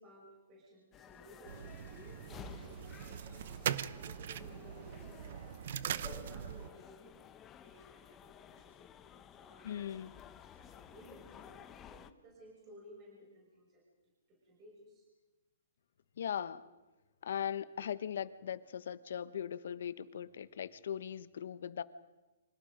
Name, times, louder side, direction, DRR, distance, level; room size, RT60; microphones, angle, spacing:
voice 1, 0.0-10.1 10.3-13.8 14.3-15.1, equal, 20° right, -3 dB, 6.1 m, -58 dB
sound 1, 0.9-12.1, left 9 dB, 15° left, 0.9 m, -54 dB
sound 2, 1.5-6.7, right 9 dB, 50° right, 0.8 m, -41 dB
voice 2, 9.6-10.1 16.2-16.6 17.2-21.8, left 9 dB, 60° left, 14 dB, 1.2 m, -39 dB
29.5 x 26.0 x 5.2 m, 1.1 s
hypercardioid pair, 165°, 0 cm